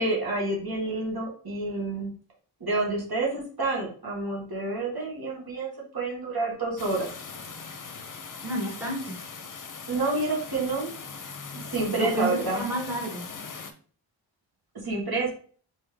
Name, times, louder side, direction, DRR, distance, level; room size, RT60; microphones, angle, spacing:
voice 1, 0.0-2.1 2.6-7.1 9.9-10.9 11.7-12.6 14.8-15.3, right 2 dB, 50° right, -3 dB, 1.9 m, -28 dB
sound 1, 6.8-13.7, left 5 dB, 45° left, 0.7 m, -40 dB
voice 2, 8.4-9.2 11.9-13.3, equal, 5° right, -3 dB, 1.8 m, -30 dB
4.3 x 3.6 x 3.4 m, 0.43 s
wide cardioid pair, 90°, 46 cm